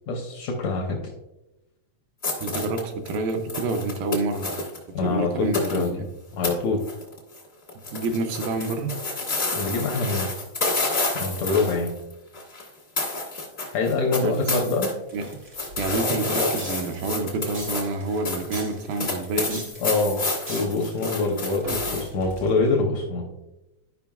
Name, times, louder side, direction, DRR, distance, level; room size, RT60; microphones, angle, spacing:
voice 1, 0.1-1.0 4.9-6.0 6.3-6.8 9.5-10.3 11.1-11.9 13.7-14.9 19.8-20.2 20.5-23.4, left 3 dB, 85° left, 1 dB, 1.5 m, -25 dB
sound 1, 2.2-4.8 5.5-5.9 6.4-6.5 6.8-7.4 7.7-12.7 13.0-14.9 15.2-22.1, left 3 dB, 65° left, 0.6 m, -29 dB
voice 2, 2.4-4.6 5.0-5.8 7.9-9.0 14.2-14.4 14.6-14.8 15.1-15.4 15.8-19.7, right 3 dB, 80° right, 5 dB, 2.3 m, -28 dB
sound 2, 15.1-22.7, right 2 dB, 60° right, 0.9 m, -41 dB
12.0 x 5.3 x 2.3 m, 0.95 s
omnidirectional pair, 4.3 m